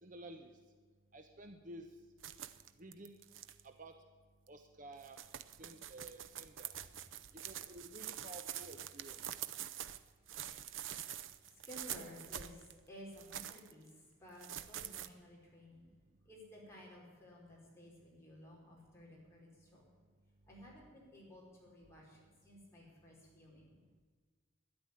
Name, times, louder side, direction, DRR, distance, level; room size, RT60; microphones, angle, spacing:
voice 1, 0.0-0.6 1.1-1.9 2.8-3.2 3.6-4.0 4.5-5.2 5.6-6.8 7.4-9.4 20.9-21.0, right 1 dB, 40° right, 6 dB, 0.9 m, -52 dB
sound 1, 2.2-3.6 4.5-4.6 4.9-10.0 10.3-12.7 13.1-13.7 14.4-15.1, right 10 dB, 75° right, 0.7 m, -46 dB
voice 2, 9.5-9.9 11.5-15.9 16.2-19.8 20.5-23.7, equal, 15° left, -5 dB, 5.0 m, -55 dB
13.0 x 10.5 x 9.8 m, 1.5 s
head